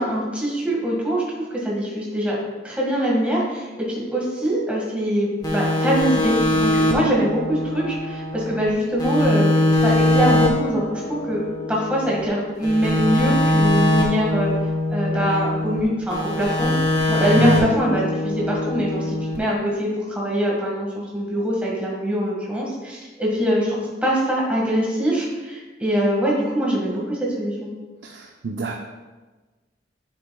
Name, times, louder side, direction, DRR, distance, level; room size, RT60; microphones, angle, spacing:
voice 1, 0.0-2.4 2.6-14.5 14.9-16.7 17.1-27.7, equal, 5° right, -4 dB, 1.8 m, -23 dB
sound 1, 5.4-8.7 9.0-12.2 12.6-15.8 16.1-19.4, left 1 dB, 25° left, 1.1 m, -22 dB
voice 2, 17.4-17.7 28.0-28.8, right 4 dB, 75° right, 2 dB, 0.5 m, -25 dB
9.6 x 6.7 x 2.3 m, 1.3 s
head